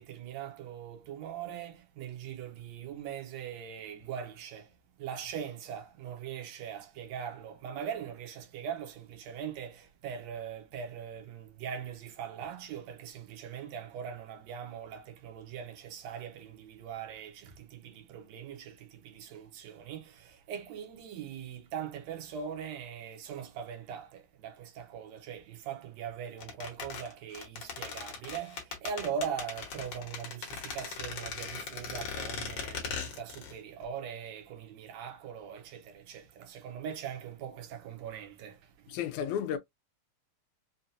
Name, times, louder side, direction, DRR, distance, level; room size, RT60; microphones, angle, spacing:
voice 1, 0.0-4.7 5.0-38.6 38.9-39.1, right 8 dB, 70° right, 2.0 m, -41 dB
sound 1, 26.4-33.6 33.8-33.9, left 6 dB, 60° left, 2.0 m, -39 dB
voice 2, 38.9-39.6, left 9 dB, 80° left, 1.9 m, -32 dB
5.6 x 2.5 x 2.5 m
omnidirectional pair, 3.6 m